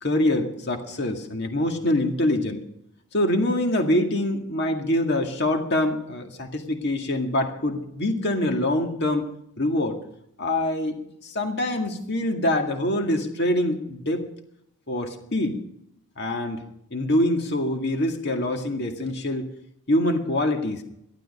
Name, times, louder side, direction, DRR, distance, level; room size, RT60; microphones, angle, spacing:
voice 1, 0.0-2.6 3.1-9.3 9.6-10.0 10.4-11.0 11.2-14.2 14.9-15.6 16.2-19.5 19.9-20.8, left 1 dB, 50° left, 4 dB, 2.0 m, -25 dB
14.5 x 12.5 x 5.4 m, 0.75 s
head